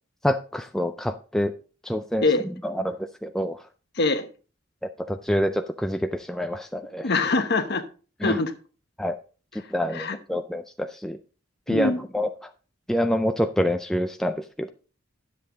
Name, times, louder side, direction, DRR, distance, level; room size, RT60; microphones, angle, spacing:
voice 1, 0.2-1.5 1.8-3.7 4.8-7.1 8.2-8.4 9.0-9.2 9.5-11.2 11.7-12.5 12.9-14.7, equal, ahead, 7 dB, 0.3 m, -27 dB
voice 2, 4.0-4.3 7.0-7.8 8.2-8.5 9.9-10.2 11.7-12.0, left 3 dB, 50° left, 8 dB, 1.0 m, -23 dB
10.0 x 7.6 x 3.8 m, 0.37 s
head